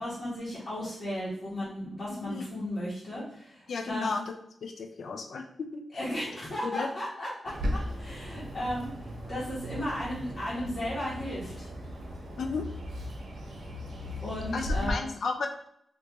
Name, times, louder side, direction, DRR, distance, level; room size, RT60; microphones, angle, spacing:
voice 1, 0.0-4.1 5.9-11.7 14.2-15.0, left 1 dB, 40° left, -10 dB, 1.2 m, -35 dB
voice 2, 2.1-2.5 3.7-4.3 4.6-6.0 6.6-6.9 12.4-12.6 14.5-15.5, left 4 dB, 60° left, 4 dB, 0.3 m, -34 dB
Bird, 7.4-14.9, equal, 80° right, 0.9 m, -37 dB
3.5 x 2.5 x 2.9 m, 0.70 s
wide cardioid pair, 160°, 0 cm